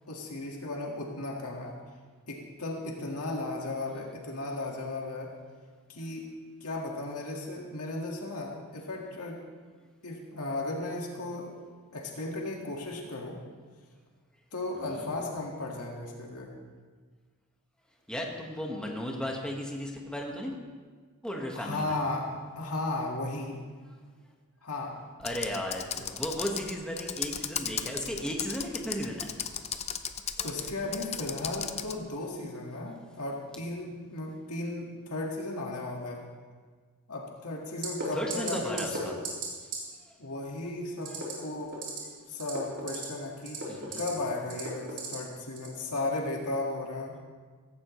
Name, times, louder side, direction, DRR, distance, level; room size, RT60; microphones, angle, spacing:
voice 1, 0.1-1.8 2.3-5.3 5.9-6.2 6.6-9.4 10.0-11.5 11.9-13.4 14.5-16.5 21.5-22.3 22.6-23.6 24.6-25.0 26.0-26.1 30.4-36.2 37.1-39.0 40.2-41.8 42.3-47.3, left 2 dB, 85° left, 0 dB, 1.9 m, -35 dB
voice 2, 14.7-15.1 18.1-20.5 21.2-21.9 25.2-29.3 30.4-30.7 38.1-39.2 41.0-41.2 43.7-44.0, equal, 5° left, -1 dB, 1.5 m, -35 dB
Computer keyboard, 25.2-32.0, left 8 dB, 30° left, 0.6 m, -36 dB
sound 1, 37.8-38.0 38.3-38.5 38.8-39.0 39.2-39.5 39.7-39.8 41.0-41.3 41.7-42.0 42.4-43.0 43.4-44.1 44.5-45.1 45.6-45.7, right 5 dB, 55° right, 3.7 m, -35 dB
16.0 x 15.5 x 3.2 m, 1.5 s
head